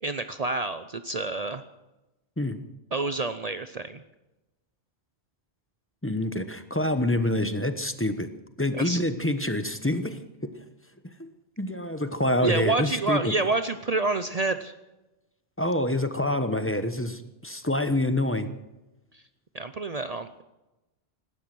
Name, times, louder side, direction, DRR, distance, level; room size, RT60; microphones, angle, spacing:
voice 1, 0.0-1.6 2.9-4.0 8.7-9.0 12.4-14.7 19.1-19.2 19.5-20.4, right 3 dB, 40° right, 10 dB, 0.7 m, -28 dB
voice 2, 6.0-8.3 8.6-10.2 11.2-11.3 11.6-13.3 15.6-18.5, left 1 dB, 15° left, 9 dB, 1.0 m, -26 dB
17.5 x 12.5 x 6.2 m, 1.0 s
omnidirectional pair, 1.1 m